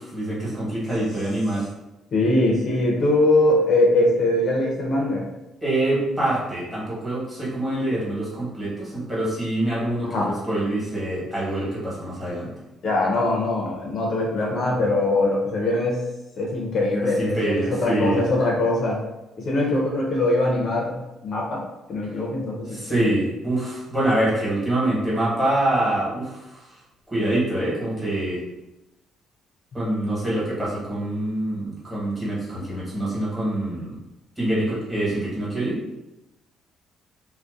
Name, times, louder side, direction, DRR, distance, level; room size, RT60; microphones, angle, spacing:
voice 1, 0.0-1.7 5.6-12.5 17.0-18.2 22.7-26.7 27.1-28.4 29.7-34.0 34.4-35.8, right 1 dB, 10° right, -8 dB, 1.1 m, -25 dB
voice 2, 2.1-5.3 10.0-10.3 12.8-16.0 16.4-19.0 19.4-23.1, left 2 dB, 50° left, -2 dB, 0.5 m, -22 dB
2.5 x 2.1 x 2.3 m, 0.97 s
cardioid pair, 125°, 0 cm